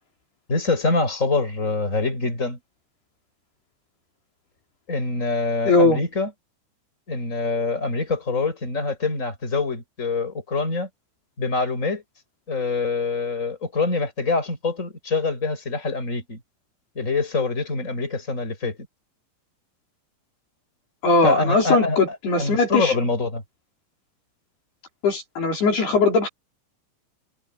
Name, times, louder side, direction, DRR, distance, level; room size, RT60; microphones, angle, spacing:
voice 1, 0.5-2.6 4.9-6.3 7.1-10.9 11.4-12.0 12.5-16.4 17.0-18.8 21.2-23.4, left 3 dB, 15° left, 7.0 m, -25 dB
voice 2, 5.7-6.0 21.0-23.0 25.0-26.3, left 3 dB, 55° left, 6.7 m, -20 dB
omnidirectional pair, 5.7 m